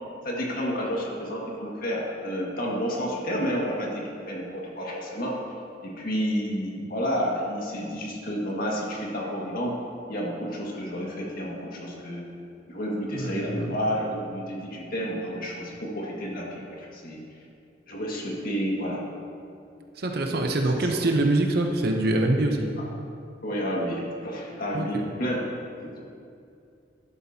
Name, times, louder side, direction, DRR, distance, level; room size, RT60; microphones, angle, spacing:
voice 1, 0.2-5.4 5.8-9.8 10.1-12.2 12.7-17.2 17.9-19.0 22.8-22.9 23.4-25.5 25.8-26.0, equal, 50° left, -3 dB, 2.0 m, -30 dB
voice 2, 13.1-13.7 19.9-22.7 24.7-24.9, right 2 dB, 55° right, 3 dB, 0.8 m, -24 dB
12.5 x 12.0 x 2.9 m, 2.5 s
head